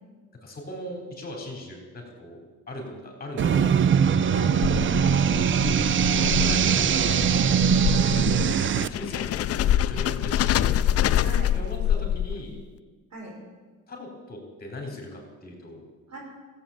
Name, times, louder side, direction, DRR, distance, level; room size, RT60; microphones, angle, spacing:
voice 1, 0.4-2.4 2.7-4.3 5.7-7.4 7.9-10.9 11.6-12.6 13.9-15.8, left 1 dB, 30° left, 1 dB, 4.1 m, -39 dB
sound 1, 3.4-8.9, right 8 dB, 40° right, 0.5 m, -21 dB
sound 2, 4.3-12.6, left 11 dB, 55° left, 0.4 m, -26 dB
voice 2, 4.3-5.1 6.0-6.7 11.2-11.6 11.9-12.1 13.1-13.3 16.1-16.2, right 2 dB, 65° right, -1 dB, 5.1 m, -40 dB
15.0 x 8.0 x 7.3 m, 1.4 s
cardioid pair, 90°, 30 cm